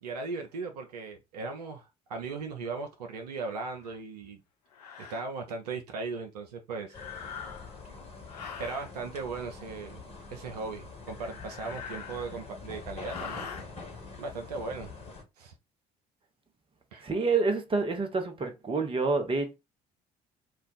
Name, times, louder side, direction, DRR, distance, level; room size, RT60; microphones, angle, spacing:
voice 1, 0.0-4.4 5.0-7.0 8.6-10.0 10.3-13.5 14.2-14.9 15.4-15.5 16.9-17.1, right 4 dB, 80° right, 0.5 m, -37 dB
sound 1, 3.8-4.0 4.7-5.2 6.9-7.8 8.3-8.9 11.1-12.5 13.0-13.7, left 7 dB, 80° left, 0.4 m, -43 dB
sound 2, 6.9-15.2, left 4 dB, 30° left, 1.2 m, -45 dB
voice 2, 17.0-19.6, right 3 dB, 25° right, 0.9 m, -28 dB
2.5 x 2.2 x 3.8 m
figure-of-eight pair, 50°, 20 cm